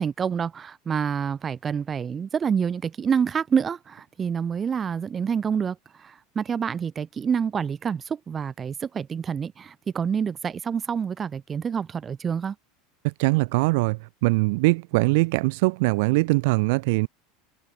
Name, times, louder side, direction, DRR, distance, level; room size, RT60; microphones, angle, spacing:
voice 1, 0.0-12.6, right 7 dB, 25° right, 7.0 m, -27 dB
voice 2, 13.0-17.1, right 25 dB, 75° right, 1.2 m, -22 dB
supercardioid pair, 120°, 0 cm